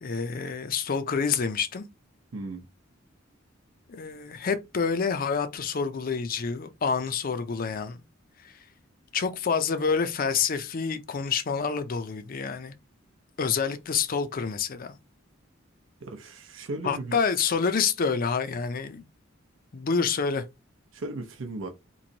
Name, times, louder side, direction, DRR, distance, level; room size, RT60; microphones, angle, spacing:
voice 1, 0.0-1.9 3.9-8.0 8.4-8.6 9.1-12.7 13.4-15.0 16.8-19.0 19.7-20.4, left 5 dB, 45° left, 0.5 m, -28 dB
voice 2, 2.3-2.7 16.0-17.2 20.9-21.7, right 2 dB, 75° right, 0.6 m, -36 dB
3.0 x 2.6 x 3.9 m
head